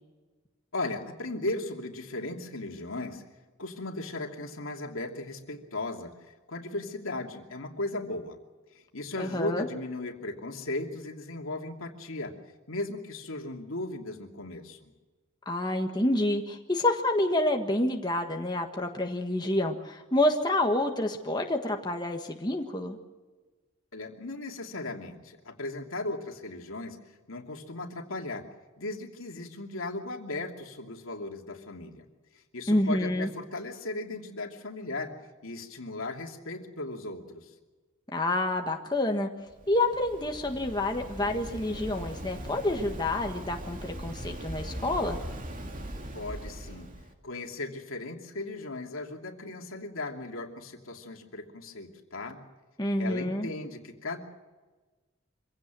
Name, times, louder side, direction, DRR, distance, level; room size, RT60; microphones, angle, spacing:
voice 1, 0.7-3.2 3.6-8.4 8.7-12.3 12.7-14.9 23.9-27.0 27.3-28.4 28.8-32.0 32.5-35.1 35.4-37.5 46.1-46.9 47.2-52.4 53.0-54.2, left 2 dB, 80° left, 3 dB, 2.8 m, -37 dB
voice 2, 9.2-9.6 15.4-23.0 32.7-33.3 38.1-39.3 39.7-45.2 52.8-53.5, left 1 dB, 20° left, 3 dB, 1.5 m, -28 dB
Waves surf, 39.5-47.1, right 1 dB, 40° right, 2.5 m, -40 dB
25.0 x 16.5 x 7.7 m, 1.3 s
head